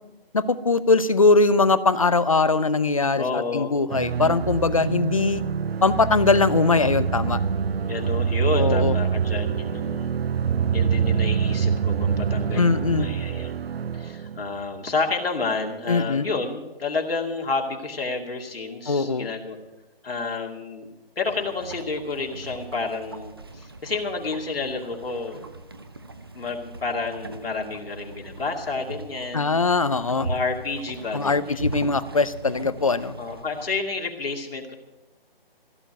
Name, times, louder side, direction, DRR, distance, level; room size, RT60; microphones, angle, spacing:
voice 1, 0.3-5.4 5.8-7.4 8.6-9.0 12.6-13.1 15.9-16.3 18.9-19.3 29.3-30.3 31.1-33.1, left 3 dB, 35° left, 16 dB, 0.5 m, -21 dB
voice 2, 3.2-3.8 7.9-10.2 10.7-13.6 13.9-19.6 20.0-20.9 21.2-25.4 26.3-29.6 30.2-31.6 33.2-34.7, left 4 dB, 70° left, 1 dB, 2.4 m, -30 dB
sound 1, 3.9-14.7, right 7 dB, 75° right, 0.6 m, -25 dB
sound 2, 21.2-33.8, right 2 dB, 25° right, 0.6 m, -39 dB
16.0 x 7.0 x 9.1 m, 1.0 s
figure-of-eight pair, 165°, 30 cm